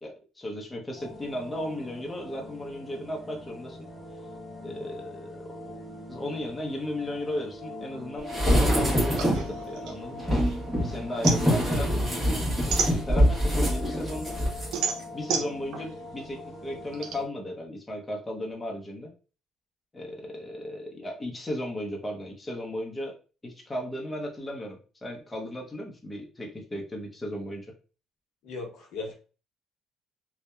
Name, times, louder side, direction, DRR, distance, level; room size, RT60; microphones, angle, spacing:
voice 1, 0.0-3.9 4.6-5.8 6.1-10.3 10.8-14.4 15.1-19.1 19.9-23.2 23.4-27.7, left 1 dB, 15° left, -1 dB, 0.7 m, -35 dB
sound 1, 1.0-17.3, left 2 dB, 35° left, 1.0 m, -43 dB
sound 2, 8.3-9.5 10.2-14.7 15.0-15.1, equal, 20° right, 1.2 m, -24 dB
sound 3, 9.2-10.7 11.0-13.5 14.0-17.1, right 6 dB, 80° right, 0.5 m, -31 dB
voice 2, 28.4-29.1, left 3 dB, 75° left, 0 dB, 0.8 m, -37 dB
2.7 x 2.1 x 2.3 m, 0.35 s
cardioid pair, 100°, 0 cm